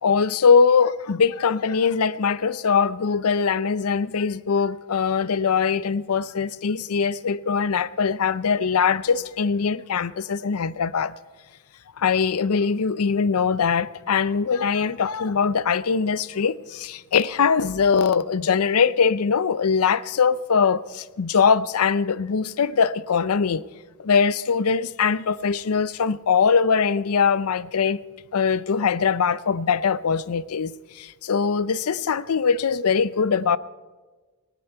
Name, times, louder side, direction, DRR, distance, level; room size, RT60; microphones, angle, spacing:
voice 1, 0.0-11.1 12.0-23.6 24.0-28.0 28.3-33.6, left 6 dB, 80° left, 0.5 m, -22 dB
18.0 x 17.5 x 4.6 m
head